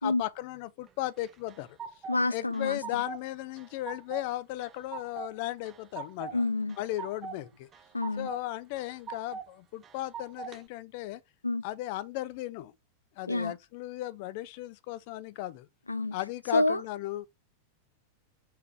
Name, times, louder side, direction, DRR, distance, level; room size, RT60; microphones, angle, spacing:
voice 1, 0.0-1.8 2.3-6.5 6.8-7.7 8.2-11.2 11.6-12.7 13.2-15.7 16.1-17.3, left 15 dB, 45° left, 0.6 m, -36 dB
sound 1, 1.2-2.2 2.5-3.3 3.6-4.2 4.6-5.3 5.7-6.4 6.7-7.4 7.7-8.4 8.8-9.5 9.8-10.6, right 6 dB, 25° right, 0.8 m, -41 dB
voice 2, 2.1-2.8 6.3-6.8 7.9-8.3 11.4-11.6 13.3-13.5 15.9-16.1 16.5-16.8, left 2 dB, 80° left, 0.3 m, -28 dB
4.7 x 4.7 x 4.7 m
figure-of-eight pair, 90°, 0 cm